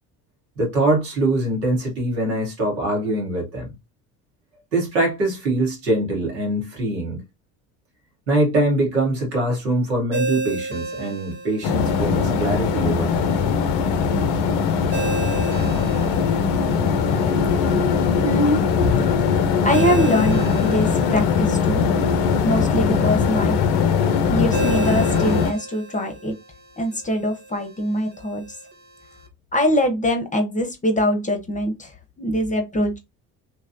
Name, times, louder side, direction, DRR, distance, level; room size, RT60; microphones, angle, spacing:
voice 1, 0.6-3.7 4.7-7.2 8.3-13.4, right 1 dB, 90° right, 1.2 m, -23 dB
Ringtone, 10.1-29.3, right 3 dB, 20° right, 0.9 m, -35 dB
sound 1, 11.6-25.5, left 6 dB, 60° left, 0.6 m, -20 dB
voice 2, 18.2-18.6 19.6-21.8 22.4-23.6 24.3-26.3 26.8-28.4 29.5-33.0, equal, 15° left, 0.8 m, -23 dB
2.9 x 2.3 x 2.5 m
hypercardioid pair, 60°, 48 cm